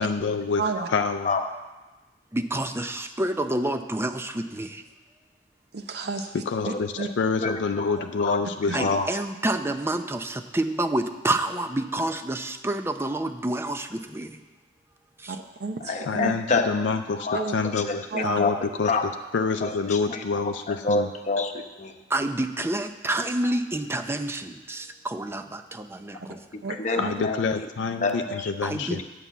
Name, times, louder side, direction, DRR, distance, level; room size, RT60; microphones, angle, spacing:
voice 1, 0.0-0.6 0.9-1.3 6.5-9.0 16.1-18.9 19.3-21.1 27.0-29.0, left 4 dB, 85° left, 7 dB, 0.4 m, -27 dB
voice 2, 0.6-0.9 5.7-6.3 6.6-7.1 8.7-8.8 15.3-16.3 17.3-17.6 18.1-18.4 26.6-27.1, right 4 dB, 60° right, 6 dB, 0.7 m, -31 dB
voice 3, 2.3-4.8 8.7-14.3 15.2-15.3 22.1-26.2 28.6-29.0, right 1 dB, 15° right, 8 dB, 0.5 m, -28 dB
voice 4, 6.6-7.1 7.4-8.4 8.7-9.0 15.8-19.0 19.6-20.3 20.7-21.9 26.2-28.5, left 3 dB, 40° left, 4 dB, 0.9 m, -29 dB
9.6 x 5.7 x 8.2 m, 1.2 s
head